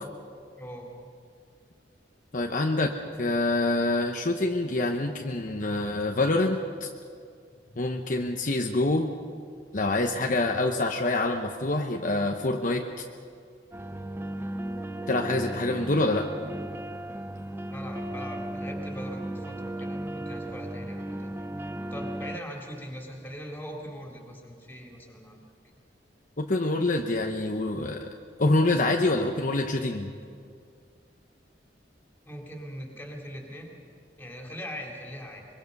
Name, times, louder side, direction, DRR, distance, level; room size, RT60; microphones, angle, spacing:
voice 1, 0.6-0.9 7.6-7.7 17.7-21.3 21.9-25.4 32.3-33.8 34.2-35.5, equal, 10° left, -1 dB, 3.6 m, -41 dB
voice 2, 2.3-6.9 7.8-9.1 9.7-12.8 15.1-16.3 26.4-28.1 28.4-30.1, left 2 dB, 50° left, 3 dB, 1.0 m, -26 dB
sound 1, 13.7-22.4, right 1 dB, 15° right, 0.6 m, -35 dB
24.0 x 23.0 x 5.5 m, 2.2 s
head